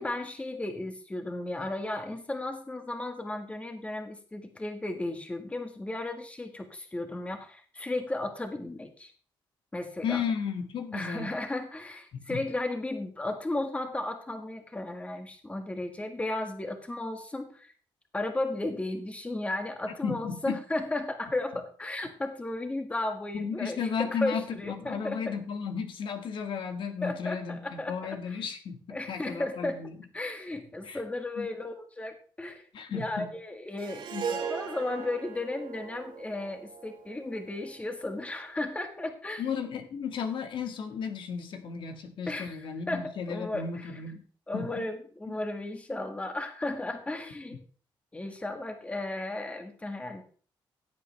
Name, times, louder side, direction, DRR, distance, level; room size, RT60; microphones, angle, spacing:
voice 1, 0.0-9.1 9.7-10.2 10.9-17.7 18.1-25.4 27.0-28.4 28.9-29.8 30.1-32.6 32.9-34.1 34.4-39.4 42.3-42.5 42.9-43.6 44.5-47.6 48.1-50.2, left 2 dB, 15° left, 5 dB, 1.8 m, -34 dB
voice 2, 10.0-11.3 12.1-12.5 19.9-20.6 23.3-30.0 30.8-31.0 31.4-31.5 32.7-33.3 34.1-34.4 39.4-44.2 44.5-44.8 45.3-45.4, left 6 dB, 70° left, 6 dB, 1.7 m, -34 dB
Harp, 33.8-38.2, right 7 dB, 65° right, 2.5 m, -39 dB
15.5 x 8.4 x 3.4 m, 0.41 s
cardioid pair, 120°, 9 cm